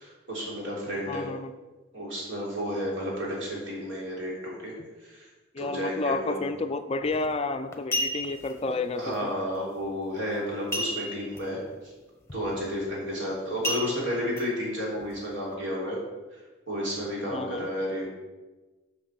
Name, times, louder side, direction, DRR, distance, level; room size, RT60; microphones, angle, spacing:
voice 1, 0.0-1.3 1.9-4.7 5.0-5.3 5.6-6.4 8.7-11.9 12.3-16.0 16.7-18.1, equal, 65° right, -4 dB, 3.5 m, -32 dB
voice 2, 1.1-1.5 4.8-4.9 5.5-9.3 17.3-17.7, left 3 dB, 30° left, 8 dB, 0.4 m, -31 dB
sound 1, 7.1-7.3 7.7-8.5 10.7-11.4 11.7-11.8 12.3-12.6 13.6-14.4 15.0-15.1, equal, 15° left, 1.0 m, -31 dB
7.8 x 6.0 x 6.4 m, 1.2 s
head